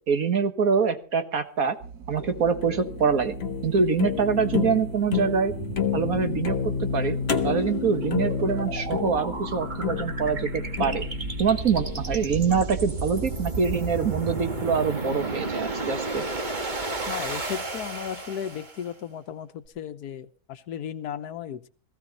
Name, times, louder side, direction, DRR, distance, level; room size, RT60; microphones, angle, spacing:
voice 1, 0.1-1.8 2.1-3.4 3.6-5.5 5.9-7.2 7.4-11.0 11.4-16.2, right 5 dB, 65° right, 8 dB, 1.9 m, -25 dB
sound 1, 1.8-12.6, right 6 dB, 80° right, 1.5 m, -42 dB
sound 2, 2.2-13.4, left 6 dB, 45° left, 1.4 m, -31 dB
sound 3, 5.5-18.9, right 3 dB, 30° right, 1.7 m, -33 dB
voice 2, 17.1-21.7, left 9 dB, 90° left, 12 dB, 1.5 m, -35 dB
18.0 x 15.5 x 4.1 m, 0.41 s
omnidirectional pair, 1.6 m